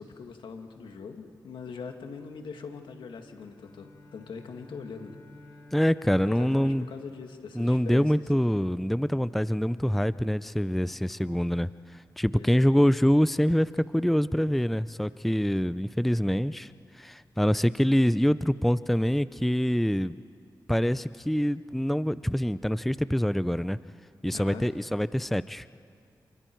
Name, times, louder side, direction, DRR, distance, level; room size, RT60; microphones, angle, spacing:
voice 1, 0.0-5.2 6.2-8.4 12.4-12.7 24.3-24.7, left 5 dB, 80° left, 5 dB, 1.9 m, -42 dB
Bowed string instrument, 3.3-8.5, left 2 dB, 60° left, 6.7 m, -53 dB
voice 2, 5.7-6.9 7.6-16.7 17.0-20.2 20.7-23.8 24.2-25.7, equal, ahead, 16 dB, 0.5 m, -25 dB
29.0 x 22.0 x 4.6 m, 2.2 s
cardioid pair, 45°, 8 cm